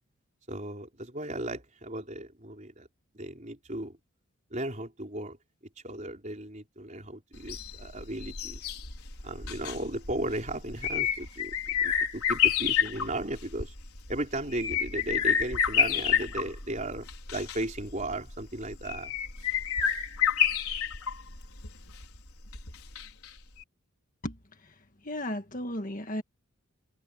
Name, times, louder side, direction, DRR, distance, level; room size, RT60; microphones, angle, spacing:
voice 1, 0.5-2.9 3.1-4.0 4.5-5.4 5.8-8.8 9.2-11.5 11.8-13.7 14.1-19.1, right 1 dB, 35° right, 4.6 m, -36 dB
sound 1, 7.4-23.3 23.6-23.7, left 8 dB, 75° left, 5.2 m, -30 dB
voice 2, 24.2-24.8 25.0-26.2, left 1 dB, 35° left, 1.8 m, -35 dB
head